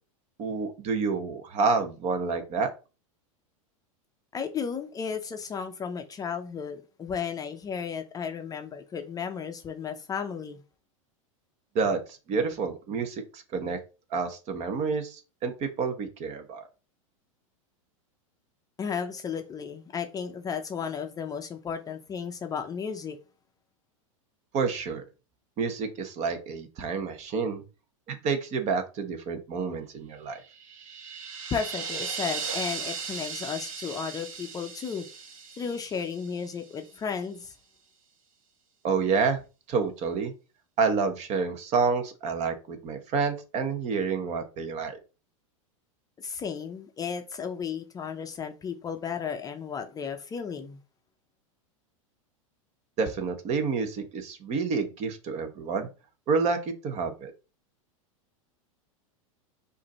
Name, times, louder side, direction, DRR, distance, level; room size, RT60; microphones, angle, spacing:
voice 1, 0.4-2.7 11.7-13.8 14.1-16.6 24.5-25.0 25.6-27.6 28.1-30.4 38.8-39.4 39.7-40.3 40.8-45.0 53.0-55.9 56.3-57.3, right 5 dB, 40° right, 1.0 m, -29 dB
voice 2, 4.3-10.6 18.8-23.2 31.5-35.1 35.6-37.5 46.2-50.8, left 6 dB, 20° left, 0.5 m, -34 dB
sound 1, 30.4-36.6, right 5 dB, 75° right, 1.2 m, -37 dB
4.8 x 2.6 x 4.2 m
hypercardioid pair, 115°, 17 cm